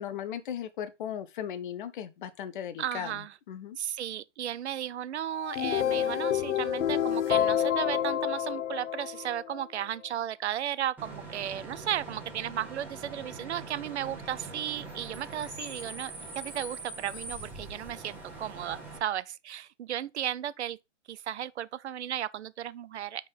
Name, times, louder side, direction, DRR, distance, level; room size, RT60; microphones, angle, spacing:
voice 1, 0.0-3.8, left 9 dB, 45° left, 0.8 m, -37 dB
voice 2, 2.8-3.3 3.8-20.8 21.1-23.3, right 11 dB, 65° right, 0.5 m, -35 dB
sound 1, 5.3-9.6, left 10 dB, 75° left, 0.6 m, -28 dB
Bus / Idling / Screech, 11.0-19.0, right 2 dB, 5° right, 1.5 m, -43 dB
5.2 x 3.8 x 5.3 m
hypercardioid pair, 140°, 37 cm